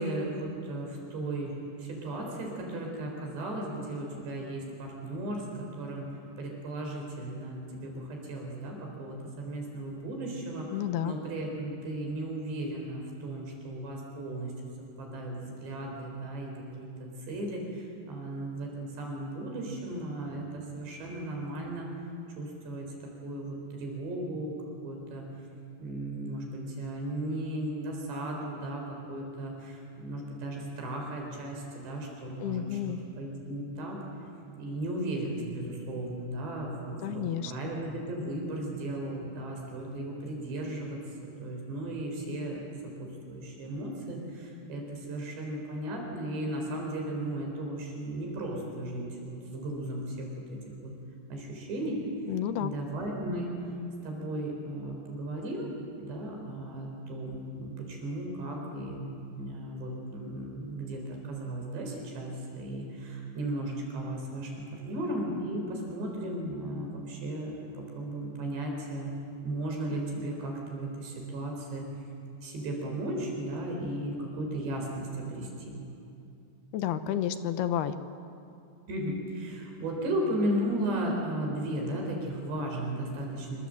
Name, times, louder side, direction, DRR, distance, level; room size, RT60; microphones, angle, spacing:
voice 1, 0.0-5.5 5.8-6.1 6.4-10.7 11.0-14.5 15.0-21.9 22.4-24.5 24.8-25.3 25.8-34.0 34.6-42.7 43.0-50.9 51.3-52.0 52.6-53.5 54.0-55.7 56.0-69.1 69.4-71.8 72.4-75.8 78.9-83.7, right 1 dB, 75° right, 0 dB, 6.5 m, -35 dB
voice 2, 10.7-11.1 32.4-33.0 37.0-37.5 52.3-52.7 76.7-78.0, left 10 dB, 75° left, 10 dB, 2.8 m, -31 dB
26.5 x 25.0 x 7.8 m, 2.6 s
omnidirectional pair, 5.0 m